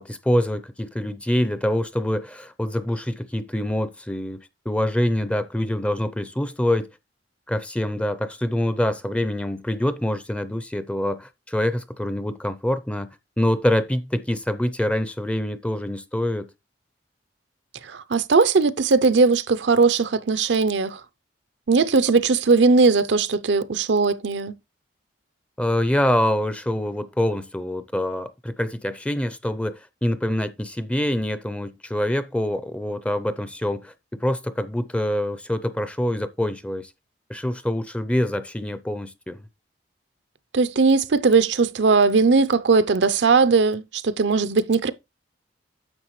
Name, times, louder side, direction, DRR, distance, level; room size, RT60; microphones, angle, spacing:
voice 1, 0.0-6.9 7.5-16.5 25.6-36.9 37.3-39.4, left 1 dB, 5° left, 0.5 m, -25 dB
voice 2, 17.8-21.0 21.7-24.5 40.5-44.9, right 4 dB, 65° right, 0.6 m, -19 dB
9.8 x 7.2 x 3.1 m
head